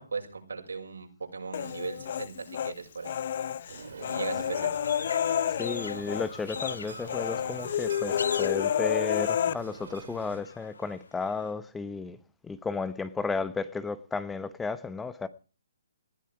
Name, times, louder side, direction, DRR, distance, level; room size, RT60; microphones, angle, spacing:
voice 1, 0.0-3.2 4.1-4.7, right 4 dB, 90° right, 6.2 m, -37 dB
Human voice, 1.5-2.7 3.1-6.3 6.5-6.8 7.1-9.5, left 9 dB, 50° left, 0.7 m, -30 dB
sound 1, 3.7-10.4, right 5 dB, 70° right, 5.1 m, -45 dB
sound 2, 4.4-11.5, left 4 dB, 80° left, 1.4 m, -43 dB
voice 2, 5.6-12.2 12.4-15.3, left 4 dB, 10° left, 0.9 m, -33 dB
19.5 x 13.0 x 4.7 m
hypercardioid pair, 150°, 0 cm